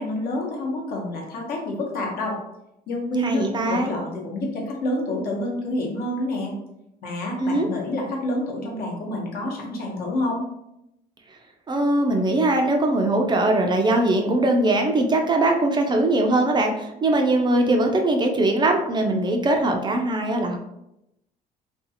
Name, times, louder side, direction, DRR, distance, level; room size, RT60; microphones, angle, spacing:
voice 1, 0.0-2.4 2.9-6.5 7.0-10.4, left 1 dB, 60° left, -1 dB, 0.9 m, -28 dB
voice 2, 3.2-3.9 7.4-7.7 11.7-20.6, right 2 dB, 25° right, 3 dB, 0.3 m, -21 dB
2.5 x 2.3 x 2.7 m, 0.85 s
cardioid pair, 110°, 17 cm